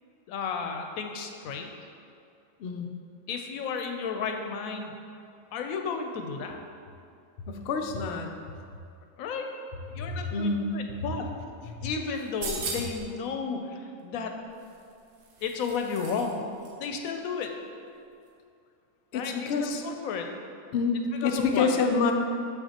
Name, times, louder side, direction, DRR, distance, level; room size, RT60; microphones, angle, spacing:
voice 1, 0.3-1.7 3.3-4.9 5.5-6.6 9.2-9.5 9.9-11.2 11.8-14.3 15.4-16.4 16.8-17.5 19.1-20.3 21.2-21.7, left 5 dB, 85° left, 4 dB, 1.0 m, -33 dB
voice 2, 7.5-8.3 9.9-10.8 19.1-19.8 20.7-22.1, left 4 dB, 65° left, 3 dB, 0.7 m, -27 dB
sound 1, 12.2-13.1 14.6-16.3 16.6-16.7, right 3 dB, 70° right, 1.1 m, -38 dB
6.7 x 5.8 x 2.8 m, 2.4 s
omnidirectional pair, 1.4 m